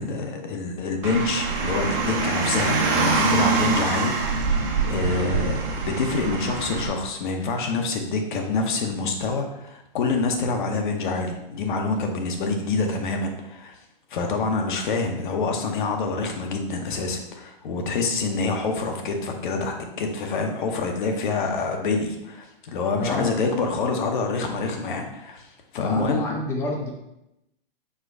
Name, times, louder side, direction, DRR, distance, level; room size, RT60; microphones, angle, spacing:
voice 1, 0.0-4.4 4.8-13.8 14.1-26.2, left 3 dB, 55° left, 3 dB, 0.8 m, -26 dB
Car, 1.0-6.9, right 4 dB, 35° right, 0.8 m, -24 dB
voice 2, 22.7-23.3 25.8-26.9, left 1 dB, 10° left, -1 dB, 0.5 m, -29 dB
4.4 x 2.2 x 4.5 m, 0.85 s
hypercardioid pair, 130°, 29 cm